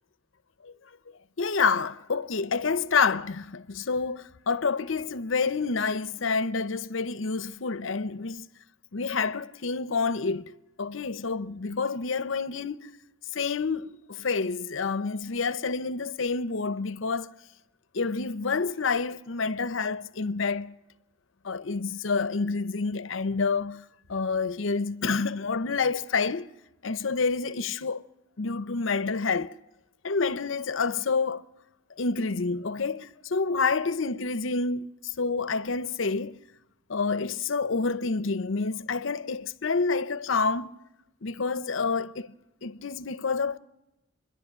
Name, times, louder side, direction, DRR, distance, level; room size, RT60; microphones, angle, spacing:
voice 1, 1.4-8.5 8.9-10.5 10.8-12.9 13.3-17.3 17.9-20.7 21.4-23.8 24.1-26.5 26.8-28.0 28.4-29.5 30.0-31.4 32.0-36.4 36.9-40.7 41.2-42.3 42.6-43.6, left 4 dB, 70° left, 0.7 m, -28 dB
27.0 x 11.5 x 8.8 m
head